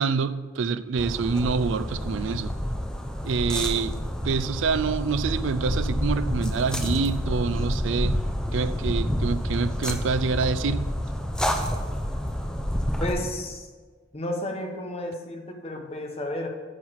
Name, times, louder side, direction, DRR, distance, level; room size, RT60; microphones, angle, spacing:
voice 1, 0.0-2.6 3.2-4.0 4.2-8.2 8.5-10.9, right 5 dB, 70° right, 0.4 m, -26 dB
sound 1, 1.0-13.1, equal, 5° left, 0.7 m, -28 dB
voice 2, 13.0-13.7 14.1-16.5, left 1 dB, 30° left, 1.2 m, -32 dB
9.9 x 4.6 x 7.2 m
head